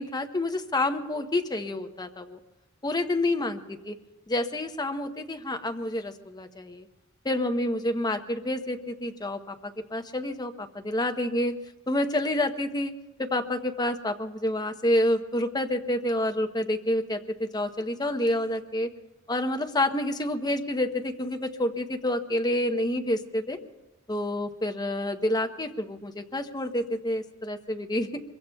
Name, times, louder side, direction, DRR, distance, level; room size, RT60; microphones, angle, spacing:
voice 1, 0.0-2.4 2.8-3.6 4.3-6.9 7.2-11.5 11.9-12.9 13.2-18.9 19.3-23.6 24.1-28.2, left 1 dB, 20° left, 6 dB, 0.8 m, -28 dB
26.0 x 23.0 x 2.3 m, 1.0 s
head